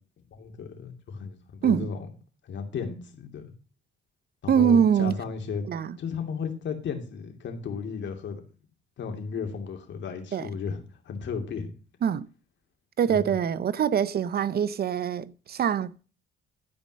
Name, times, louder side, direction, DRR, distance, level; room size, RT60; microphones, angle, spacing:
voice 1, 0.3-2.0 2.5-3.5 4.4-5.6 6.0-8.4 9.0-11.7 13.1-13.2, left 6 dB, 65° left, 2.8 m, -34 dB
voice 2, 4.5-5.2 5.7-6.0 10.3-10.5 12.0-12.3 13.0-15.9, right 8 dB, 50° right, 0.7 m, -24 dB
12.5 x 5.3 x 6.5 m
cardioid pair, 90°, 20 cm